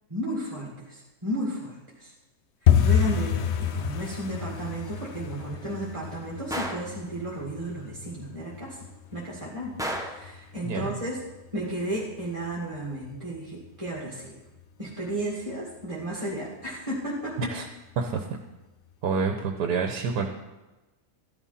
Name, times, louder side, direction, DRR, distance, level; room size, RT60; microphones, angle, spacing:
voice 1, 0.1-2.1 2.8-8.9 9.1-11.2 11.5-14.4 14.8-17.5, right 1 dB, 20° right, -5 dB, 2.1 m, -33 dB
sound 1, 2.7-13.4 13.6-14.3 14.6-14.9 15.1-15.5 15.8-15.9 16.4-17.0 17.3-17.4 17.9-18.0, left 9 dB, 60° left, 0.7 m, -29 dB
Gunshot gunfire, 6.5-6.9 9.8-10.3, right 1 dB, 5° right, 0.9 m, -32 dB
voice 2, 18.0-18.4 19.0-20.3, right 5 dB, 75° right, 4 dB, 1.5 m, -28 dB
13.5 x 11.0 x 4.2 m, 1.1 s
omnidirectional pair, 1.8 m